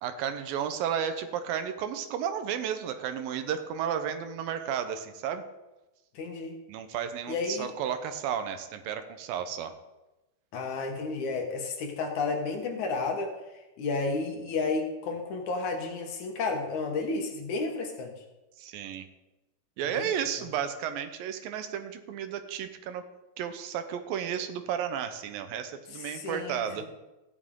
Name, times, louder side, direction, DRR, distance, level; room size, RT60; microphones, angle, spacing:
voice 1, 0.0-5.4 6.7-9.7 18.6-19.1 19.8-23.0 23.4-26.8, right 8 dB, 80° right, 9 dB, 2.5 m, -33 dB
voice 2, 6.2-6.6 7.3-7.7 10.5-13.3 13.8-18.2 19.9-20.1 25.9-26.9, left 3 dB, 65° left, 3 dB, 2.3 m, -32 dB
14.5 x 10.5 x 3.7 m, 1.0 s
omnidirectional pair, 4.1 m